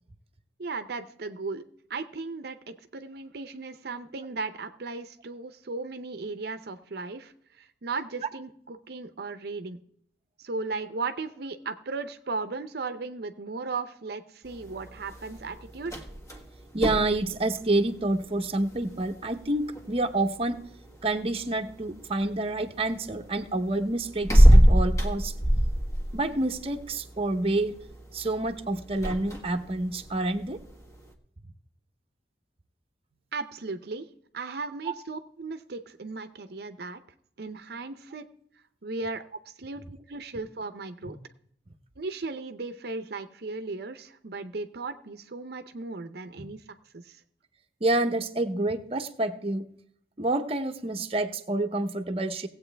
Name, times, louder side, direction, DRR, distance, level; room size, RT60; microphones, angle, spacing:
voice 1, 0.6-9.8 10.4-16.0 33.3-37.0 37.4-38.3 38.8-39.2 39.6-41.2 42.0-46.6 46.9-47.2, right 3 dB, 65° right, 10 dB, 0.7 m, -36 dB
sound 1, 14.4-31.1, equal, 20° left, 1.4 m, -27 dB
voice 2, 16.7-20.6 21.0-25.3 26.1-27.8 28.1-30.6 34.9-35.0 47.8-49.7 50.2-52.5, right 2 dB, 35° right, 6 dB, 0.8 m, -28 dB
18.0 x 8.1 x 3.4 m, 0.67 s
head